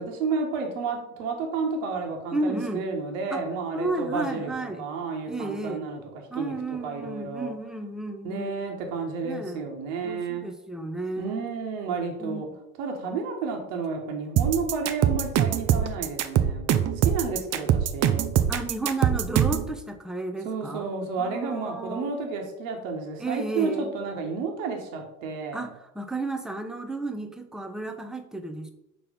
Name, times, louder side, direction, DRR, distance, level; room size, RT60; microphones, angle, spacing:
voice 1, 0.0-6.0 6.3-7.5 8.2-10.5 11.2-12.5 12.8-16.7 17.0-18.2 20.4-25.7, right 4 dB, 65° right, 2 dB, 1.6 m, -31 dB
voice 2, 2.3-2.8 3.3-3.4 3.7-4.8 5.3-5.8 6.3-8.6 9.2-9.6 10.0-11.5 12.2-12.4 18.5-20.9 21.2-22.1 23.2-23.9 25.5-28.7, right 2 dB, ahead, 5 dB, 0.8 m, -32 dB
sound 1, 14.4-19.7, right 10 dB, 35° right, 0.7 m, -22 dB
5.5 x 4.1 x 5.4 m, 0.84 s
hypercardioid pair, 70°, 42 cm